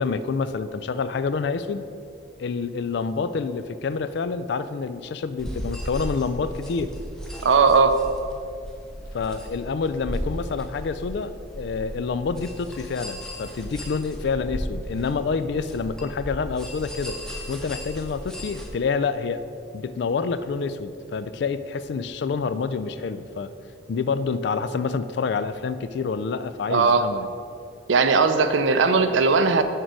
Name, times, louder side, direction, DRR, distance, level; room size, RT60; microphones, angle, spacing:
voice 1, 0.0-1.9 2.4-6.9 9.1-17.2 17.5-19.4 19.7-23.5 23.9-27.3, left 5 dB, 55° left, 13 dB, 0.3 m, -27 dB
sound 1, 5.4-18.7, equal, 5° left, 0.7 m, -36 dB
voice 2, 7.4-8.0 26.7-27.1 27.9-29.6, right 4 dB, 65° right, 9 dB, 0.5 m, -18 dB
6.6 x 4.6 x 6.2 m, 2.5 s
head